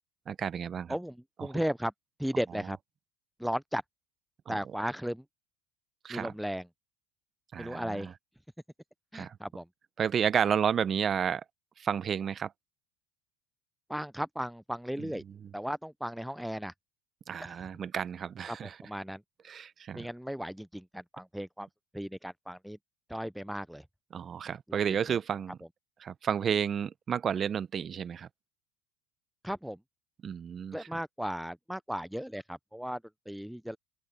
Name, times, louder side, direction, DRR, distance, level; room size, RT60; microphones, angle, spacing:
voice 1, 0.3-1.0 1.4-1.6 4.5-4.6 6.0-6.3 7.5-8.1 9.1-9.4 10.0-11.4 11.8-12.5 15.0-15.1 15.4-15.5 17.3-18.8 19.5-20.1 24.1-25.6 26.0-28.3 30.2-31.0, right 8 dB, 35° right, 0.7 m, -31 dB
voice 2, 0.9-1.9 2.2-2.8 3.4-3.8 4.5-5.2 6.1-6.7 7.6-8.1 9.1-9.7 13.9-15.2 15.5-16.7 17.4-17.7 18.5-19.2 19.9-21.7 21.9-22.8 23.1-23.8 24.7-24.8 25.1-25.2 29.4-29.8 30.7-33.8, equal, ahead, 0.4 m, -36 dB
open air
supercardioid pair, 110°, 0 cm